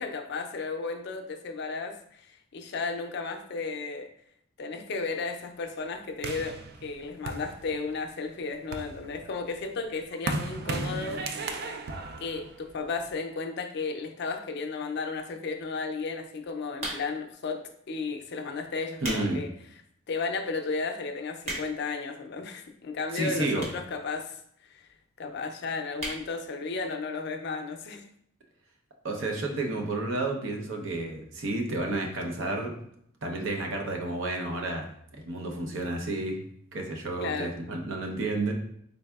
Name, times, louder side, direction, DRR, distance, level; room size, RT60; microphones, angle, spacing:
voice 1, 0.0-2.3 2.5-4.1 4.6-11.2 12.2-19.5 20.1-24.4 24.7-24.9 25.2-28.0 37.2-37.5, left 4 dB, 60° left, 4 dB, 0.4 m, -34 dB
sound 1, 6.2-8.1 8.5-13.2, right 3 dB, 50° right, 0.3 m, -36 dB
sound 2, 16.8-17.3 18.0-18.2 18.8-19.3 19.7-19.8 20.4-20.5 20.7-20.8 21.1-21.9 22.7-22.8 23.6-23.9 24.2-24.3 24.5-24.6 24.8-24.9 25.2-25.5 25.9-26.2 26.6-26.7 26.9-27.0, right 1 dB, 35° right, 1.0 m, -36 dB
voice 2, 19.0-19.4 23.1-23.7 29.0-32.7 33.2-34.8 35.2-36.4 36.7-38.5, right 2 dB, 80° right, 2 dB, 0.7 m, -31 dB
4.0 x 3.4 x 2.3 m, 0.68 s
head